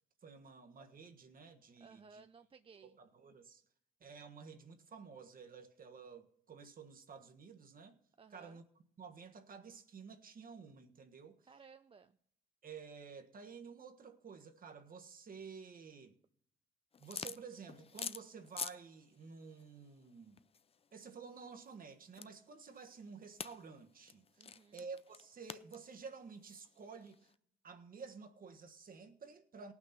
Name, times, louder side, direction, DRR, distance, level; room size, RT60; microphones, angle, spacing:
voice 1, 0.2-2.2 2.8-3.6 4.0-8.0 8.3-8.6 9.0-11.4 12.6-16.1 17.0-20.4 20.9-24.2 24.7-27.3 27.6-29.7, right 5 dB, 45° right, 1.4 m, -52 dB
voice 2, 1.8-3.0 8.2-8.6 11.5-12.2 24.4-24.8, right 5 dB, 30° right, 0.4 m, -59 dB
sound 1, 16.9-18.8 19.1-27.3, left 6 dB, 30° left, 0.4 m, -48 dB
18.0 x 6.1 x 5.9 m
cardioid pair, 90°, 20 cm